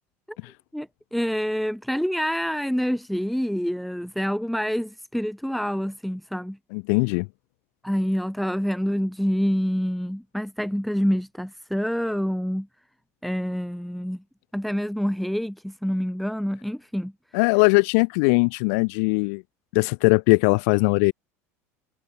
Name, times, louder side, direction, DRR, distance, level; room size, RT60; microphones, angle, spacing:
voice 1, 0.7-6.6 7.8-12.7 13.2-14.2 14.5-17.1, equal, ahead, 1.2 m, -27 dB
voice 2, 6.7-7.3 17.3-19.4 19.7-21.1, left 35 dB, 70° left, 0.4 m, -20 dB
hypercardioid pair, 85°, 8 cm